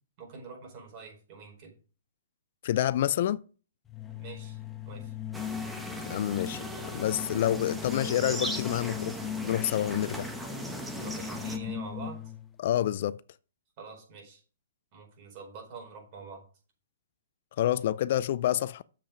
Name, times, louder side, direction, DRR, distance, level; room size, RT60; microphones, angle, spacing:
voice 1, 0.2-1.7 4.1-4.6 4.8-5.1 11.0-12.3 13.8-14.4 14.9-16.4, right 4 dB, 40° right, 4.6 m, -46 dB
voice 2, 2.6-3.4 6.0-10.3 12.6-13.2 17.6-18.8, left 12 dB, 50° left, 0.4 m, -28 dB
sound 1, 3.9-12.5, left 9 dB, 15° left, 0.7 m, -39 dB
sound 2, 5.3-11.6, right 1 dB, 5° right, 1.1 m, -38 dB
7.4 x 7.3 x 5.1 m
hypercardioid pair, 145°, 0 cm